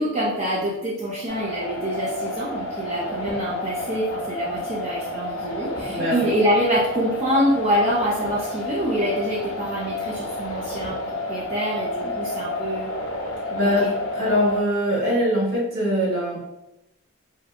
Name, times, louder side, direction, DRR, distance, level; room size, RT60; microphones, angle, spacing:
voice 1, 0.0-11.0 11.3-12.9 13.5-13.9, equal, 30° right, -5 dB, 0.4 m, -25 dB
sound 1, 1.3-14.6, left 1 dB, 65° left, 0.4 m, -31 dB
voice 2, 5.9-6.3 12.0-12.1 13.6-16.4, equal, 65° right, -7 dB, 1.0 m, -22 dB
2.6 x 2.5 x 2.3 m, 0.88 s
head